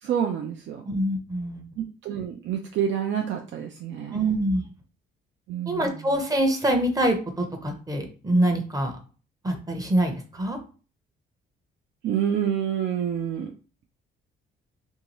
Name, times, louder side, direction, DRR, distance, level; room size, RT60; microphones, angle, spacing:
voice 1, 0.0-0.8 1.8-4.4 5.5-6.0 12.0-13.5, right 9 dB, 70° right, 3 dB, 0.4 m, -28 dB
voice 2, 0.9-1.6 4.1-4.6 5.7-9.0 9.4-10.6, right 1 dB, 20° right, 4 dB, 0.6 m, -25 dB
2.7 x 2.3 x 2.9 m, 0.37 s
cardioid pair, 90°, 20 cm